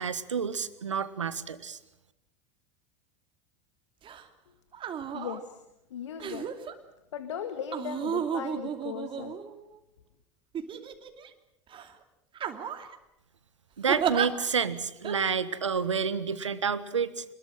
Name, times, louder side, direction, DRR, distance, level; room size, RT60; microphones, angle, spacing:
voice 1, 0.0-1.8 13.8-17.2, right 6 dB, 85° right, 14 dB, 1.5 m, -29 dB
sound 1, 4.0-4.2 4.7-5.4 6.2-6.7 7.7-9.8 10.5-11.3 11.7-11.9 12.4-13.0 13.9-14.3 15.0-15.2, right 8 dB, 35° right, 2.7 m, -33 dB
voice 2, 5.1-5.6 5.9-6.5 7.1-9.4, left 8 dB, 75° left, 9 dB, 1.9 m, -37 dB
27.0 x 21.0 x 7.7 m, 0.86 s
hypercardioid pair, 85°, 15 cm